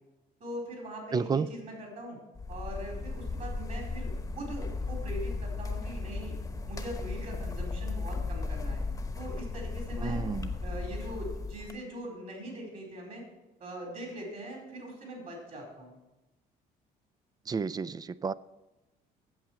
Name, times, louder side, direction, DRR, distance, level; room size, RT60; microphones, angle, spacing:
voice 1, 0.4-2.2 2.5-6.4 6.7-8.8 9.2-10.2 10.6-13.2 13.6-16.0, right 1 dB, 50° right, 0 dB, 4.4 m, -41 dB
voice 2, 1.1-1.5 10.0-10.5 17.5-18.3, right 5 dB, 25° right, 18 dB, 0.3 m, -31 dB
sound 1, 2.4-11.7, left 3 dB, 20° left, 1.0 m, -35 dB
8.8 x 7.5 x 7.4 m, 1.0 s
cardioid pair, 110°, 17 cm